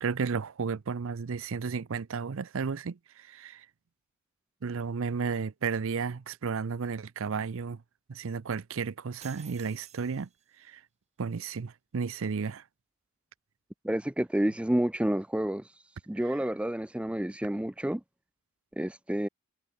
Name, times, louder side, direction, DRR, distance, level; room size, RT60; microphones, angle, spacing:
voice 1, 0.0-3.7 4.6-7.8 8.1-10.3 10.6-10.8 11.2-12.6, right 5 dB, 65° right, 0.5 m, -33 dB
sound 1, 9.2-10.7, right 9 dB, 30° right, 2.4 m, -53 dB
voice 2, 13.8-15.7 16.1-18.0 18.8-19.3, right 1 dB, 5° right, 0.4 m, -29 dB
head